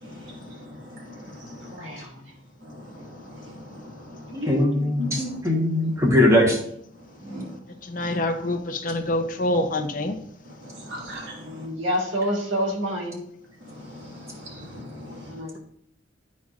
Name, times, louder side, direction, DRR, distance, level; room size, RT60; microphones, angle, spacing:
voice 1, 0.0-1.8 2.6-4.4 5.0-5.2 7.3-7.5 8.0-8.2 10.6-11.5 13.6-15.3, left 2 dB, 65° right, -3 dB, 1.9 m, -40 dB
voice 2, 1.6-2.3 4.3-5.3 7.2-7.5 11.3-13.2 15.0-15.6, equal, 85° right, -1 dB, 1.7 m, -30 dB
voice 3, 4.5-6.6, left 1 dB, 15° right, 0 dB, 1.2 m, -20 dB
voice 4, 7.8-10.2, left 1 dB, 45° left, 5 dB, 0.6 m, -26 dB
11.5 x 4.1 x 2.5 m, 0.70 s
head